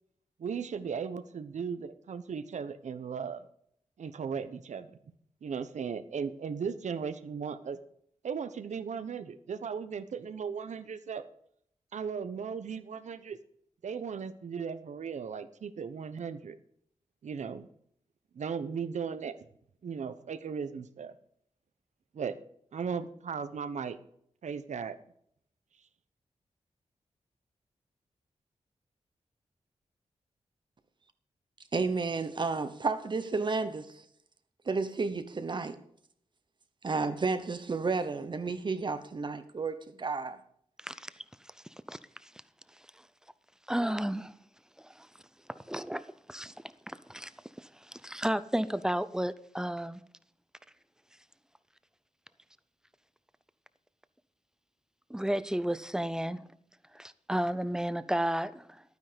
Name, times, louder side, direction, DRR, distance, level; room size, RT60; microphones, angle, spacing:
voice 1, 0.4-3.4 4.0-5.0 5.4-7.8 8.2-11.2 11.9-13.4 13.8-16.6 17.2-17.7 18.3-19.4 19.8-21.1 22.1-22.4 22.7-24.0 24.4-25.0, right 6 dB, 85° right, 1.0 m, -37 dB
voice 2, 31.7-34.0 34.6-35.8 36.8-40.4, right 4 dB, 40° right, 0.9 m, -32 dB
voice 3, 40.8-41.2 41.9-42.3 43.7-44.3 44.8-45.1 45.5-46.5 46.9-47.3 47.6-50.0 55.1-56.4 56.9-58.8, right 1 dB, 5° right, 0.6 m, -33 dB
12.0 x 9.5 x 5.2 m
wide cardioid pair, 150°, 12 cm